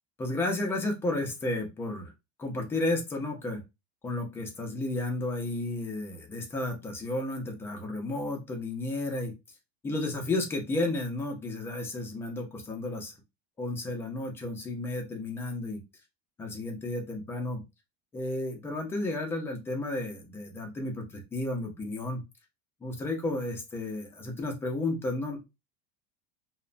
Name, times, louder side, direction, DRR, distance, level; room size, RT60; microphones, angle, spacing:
voice 1, 0.2-2.1 2.4-3.6 4.0-9.3 9.8-13.1 13.6-15.8 16.4-17.6 18.1-22.2 22.8-25.4, left 2 dB, 10° left, 3 dB, 0.4 m, -32 dB
2.9 x 2.1 x 2.5 m, 0.24 s
supercardioid pair, 170°, 21 cm